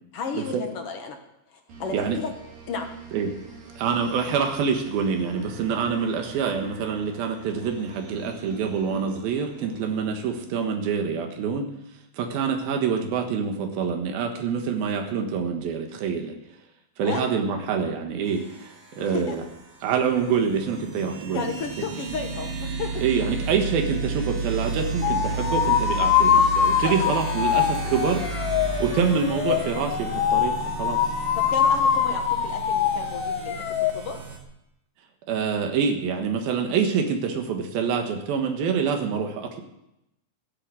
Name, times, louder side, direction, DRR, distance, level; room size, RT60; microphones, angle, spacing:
voice 1, 0.1-1.2 1.5-2.3 2.7-2.9 17.0-17.3 19.0-19.4 21.3-22.9 27.0-27.1 31.3-33.6 33.9-34.2, left 5 dB, 60° left, 4 dB, 1.6 m, -33 dB
sound 1, 1.7-11.1, right 4 dB, 65° right, 4.1 m, -46 dB
voice 2, 3.8-11.7 12.1-16.4 17.0-19.4 19.8-21.5 23.0-28.2 28.8-31.0 35.3-39.6, right 6 dB, 85° right, 4 dB, 3.3 m, -26 dB
sound 2, 18.3-34.4, right 4 dB, 45° right, 2.6 m, -33 dB
sound 3, 25.0-33.9, left 8 dB, 90° left, 2.9 m, -23 dB
15.0 x 8.5 x 7.7 m, 0.85 s
omnidirectional pair, 4.1 m